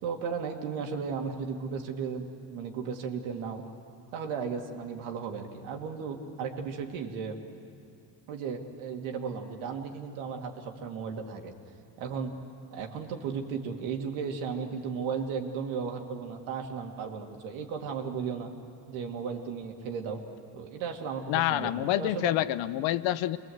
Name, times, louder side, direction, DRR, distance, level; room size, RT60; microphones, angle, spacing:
voice 1, 0.0-3.6 4.1-7.4 8.3-11.5 12.0-12.3 12.7-18.5 18.9-20.2 20.5-22.6, right 6 dB, 85° right, 2 dB, 2.5 m, -35 dB
voice 2, 21.3-23.4, left 14 dB, 70° left, 14 dB, 0.9 m, -27 dB
26.5 x 21.5 x 8.0 m, 2.6 s
cardioid pair, 100°, 47 cm